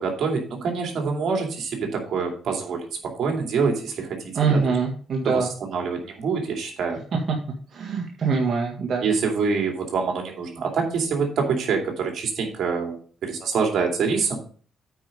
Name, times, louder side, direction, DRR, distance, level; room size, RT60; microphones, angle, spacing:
voice 1, 0.0-4.6 5.2-7.0 9.0-14.4, right 5 dB, 70° right, 2 dB, 2.5 m, -26 dB
voice 2, 4.3-5.5 7.1-7.2 7.7-9.0, right 5 dB, 50° right, -1 dB, 1.6 m, -23 dB
9.0 x 4.9 x 5.2 m, 0.43 s
cardioid pair, 90°, 0 cm